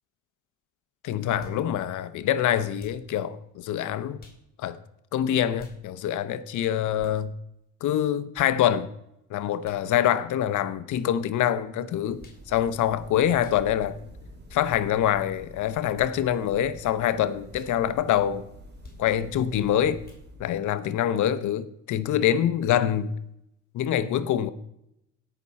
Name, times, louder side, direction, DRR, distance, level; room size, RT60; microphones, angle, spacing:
voice 1, 1.0-4.2 4.6-4.8 5.1-7.3 7.8-8.9 9.3-14.0 14.5-18.4 19.0-20.0 20.4-23.1 23.7-24.5, left 10 dB, 80° left, 0.8 m, -25 dB
sound 1, 1.4-1.6 2.8-3.1 4.2-4.4 5.6-5.8 7.0-7.2 8.4-8.5 9.6-9.8 10.9-11.1 12.2-12.5 13.4-13.6 14.7-14.9 16.0-16.2 17.5-17.7 18.8-19.0 20.0-20.3, left 4 dB, 30° left, 3.2 m, -49 dB
sound 2, 11.7-20.8, equal, 35° right, 2.6 m, -48 dB
17.0 x 6.0 x 4.2 m
cardioid pair, 90°, 30 cm